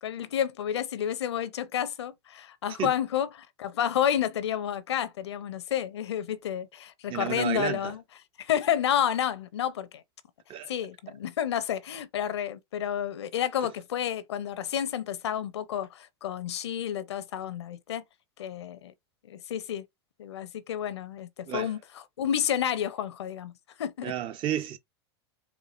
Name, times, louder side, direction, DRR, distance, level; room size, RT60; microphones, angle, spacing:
voice 1, 0.0-8.0 8.4-10.0 10.7-18.0 18.4-18.9 19.3-19.9 20.2-23.5 23.8-24.1, left 9 dB, 85° left, 0.7 m, -30 dB
voice 2, 7.1-7.9 10.5-10.7 21.5-21.7 24.0-24.8, right 11 dB, 40° right, 0.7 m, -31 dB
4.4 x 2.7 x 2.6 m
hypercardioid pair, 105°, 14 cm